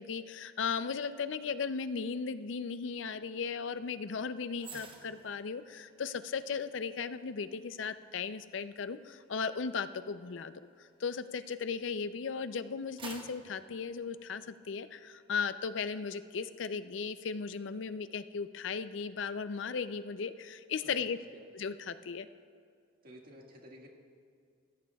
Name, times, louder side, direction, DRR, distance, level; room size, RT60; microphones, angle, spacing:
voice 1, 0.0-10.5 10.8-21.2 21.5-22.3, left 5 dB, 70° left, 12 dB, 0.5 m, -36 dB
sound 1, 4.6-12.0 12.4-14.8 15.2-15.4, right 3 dB, 25° right, 1.1 m, -54 dB
voice 2, 20.8-21.4 23.0-23.9, equal, 50° right, 0 dB, 1.8 m, -53 dB
21.5 x 16.0 x 2.3 m, 2.3 s
head